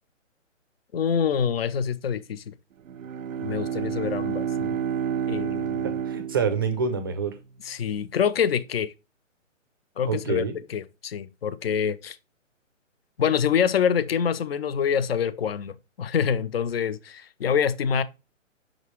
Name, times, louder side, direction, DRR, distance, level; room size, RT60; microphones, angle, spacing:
voice 1, 0.9-2.5 3.4-4.8 5.3-5.9 7.6-8.9 10.0-10.4 10.7-12.2 13.2-18.0, left 7 dB, 50° left, 0.6 m, -26 dB
Bowed string instrument, 2.8-7.2, right 8 dB, 90° right, 0.6 m, -30 dB
voice 2, 5.8-7.3 10.1-10.5, right 5 dB, 20° right, 0.5 m, -27 dB
6.0 x 5.3 x 3.0 m
hypercardioid pair, 150°, 39 cm